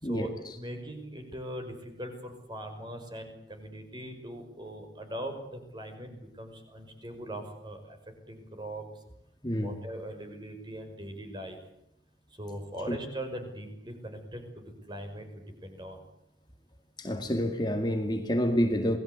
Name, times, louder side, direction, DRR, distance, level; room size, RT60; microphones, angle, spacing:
voice 1, 0.0-8.0 8.3-9.0 9.6-11.6 12.4-16.0, right 1 dB, 25° right, 5.9 m, -41 dB
voice 2, 9.4-9.7 12.9-13.0 17.0-19.0, equal, 25° left, 2.2 m, -28 dB
28.5 x 20.0 x 8.3 m
head